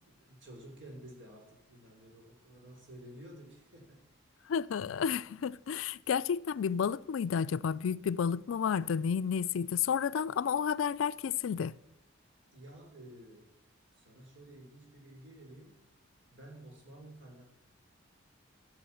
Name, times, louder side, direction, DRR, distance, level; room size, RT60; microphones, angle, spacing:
voice 1, 0.0-4.0 12.5-13.5 13.9-15.9 16.3-17.5, right 1 dB, 60° right, 3.7 m, -52 dB
voice 2, 4.5-11.7, left 7 dB, 75° left, 0.4 m, -31 dB
12.0 x 7.3 x 7.0 m
head